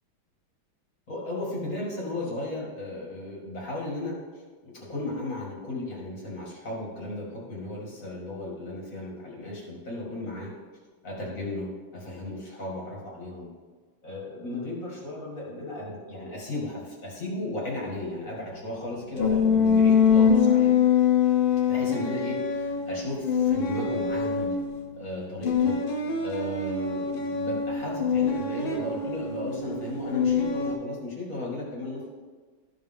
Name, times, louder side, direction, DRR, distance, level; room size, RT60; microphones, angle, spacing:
voice 1, 1.1-4.1 4.6-10.5 11.0-13.5 14.0-20.7 21.6-24.5 25.0-25.7 26.2-32.1, left 2 dB, 40° left, -4 dB, 2.5 m, -35 dB
sound 1, 19.2-24.9 25.4-30.7, left 6 dB, 90° left, 1.9 m, -24 dB
14.0 x 5.2 x 3.7 m, 1.4 s
omnidirectional pair, 2.2 m